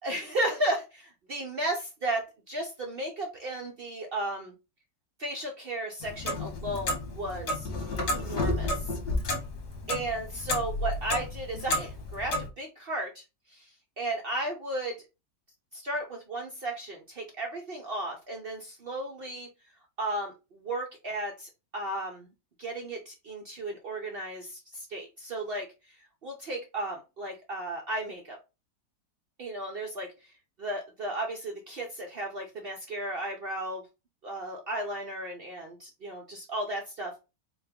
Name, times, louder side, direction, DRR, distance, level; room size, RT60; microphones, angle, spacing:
voice 1, 0.0-4.5 5.2-7.7 8.1-9.0 9.9-15.0 15.7-19.5 20.0-22.3 22.6-28.4 29.4-30.1 30.6-33.8 34.2-37.1, right 1 dB, 80° right, 1 dB, 0.5 m, -34 dB
Clock, 6.0-12.5, left 2 dB, 50° left, 1.0 m, -31 dB
4.0 x 2.3 x 3.4 m, 0.28 s
omnidirectional pair, 1.8 m